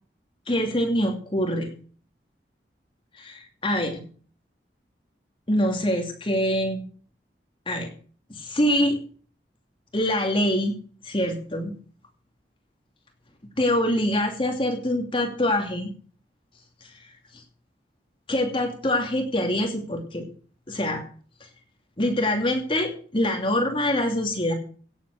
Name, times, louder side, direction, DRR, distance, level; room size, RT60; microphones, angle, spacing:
voice 1, 0.5-1.7 3.1-4.0 5.5-6.8 7.7-7.9 8.3-9.0 9.9-10.7 11.0-11.7 13.6-15.9 16.8-17.4 18.3-20.3 20.7-21.0 21.4-21.5 22.0-24.5, left 1 dB, 30° left, 3 dB, 2.7 m, -25 dB
16.5 x 7.8 x 6.4 m, 0.43 s
head